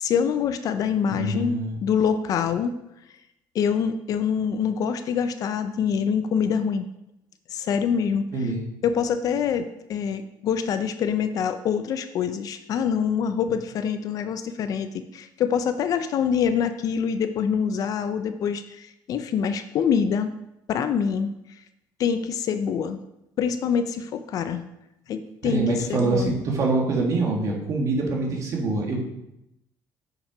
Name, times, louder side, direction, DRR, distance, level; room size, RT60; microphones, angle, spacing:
voice 1, 0.0-2.7 3.5-6.9 7.5-8.3 8.8-20.3 20.7-21.3 22.0-23.0 23.4-24.7 25.1-26.3, left 7 dB, 45° left, 9 dB, 0.4 m, -25 dB
voice 2, 1.2-1.8 8.3-8.6 25.4-29.0, right 3 dB, 40° right, 0 dB, 1.5 m, -25 dB
6.5 x 5.9 x 4.9 m, 0.87 s
cardioid pair, 170°, 8 cm